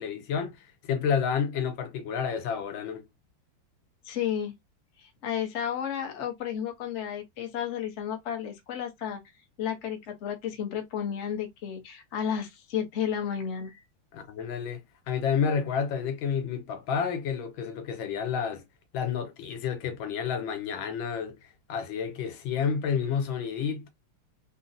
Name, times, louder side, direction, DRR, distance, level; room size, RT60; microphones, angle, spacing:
voice 1, 0.0-3.1 14.1-18.6 18.9-23.9, left 7 dB, 85° left, 1.5 m, -30 dB
voice 2, 4.0-4.5 5.0-9.2 9.6-13.8, left 9 dB, 50° left, 0.9 m, -32 dB
4.0 x 2.1 x 2.5 m
omnidirectional pair, 2.1 m